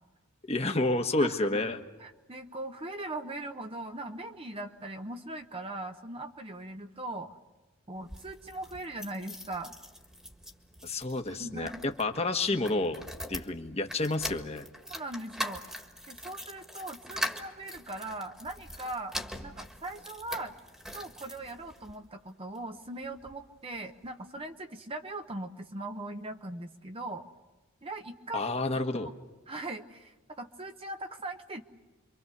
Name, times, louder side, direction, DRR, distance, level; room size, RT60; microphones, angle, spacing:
voice 1, 0.4-1.8 10.8-13.0 13.3-14.6 28.3-29.1, left 2 dB, 30° left, 5 dB, 1.4 m, -30 dB
voice 2, 1.2-1.6 2.0-7.3 7.9-9.7 11.3-11.8 12.5-12.7 14.9-19.1 19.4-20.5 20.9-27.2 27.8-28.5 29.5-31.6, right 2 dB, 30° right, 6 dB, 1.0 m, -40 dB
sound 1, 7.9-22.0 22.6-23.4 23.7-23.8 24.0-24.1, equal, 5° right, 1.7 m, -42 dB
28.0 x 24.5 x 6.9 m, 1.2 s
head